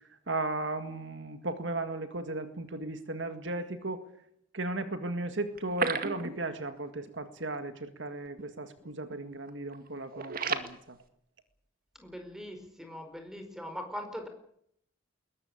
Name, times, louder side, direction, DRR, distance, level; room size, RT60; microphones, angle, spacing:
voice 1, 0.3-4.0 4.5-11.0, right 2 dB, 65° right, 9 dB, 2.0 m, -36 dB
sound 1, 5.5-6.8 7.1-7.2 7.5-7.6 8.3-8.5 8.8-9.1 9.5-10.7, right 4 dB, 50° right, 2.0 m, -34 dB
voice 2, 12.0-14.3, equal, ahead, 6 dB, 4.9 m, -41 dB
21.5 x 19.0 x 8.7 m, 0.71 s
head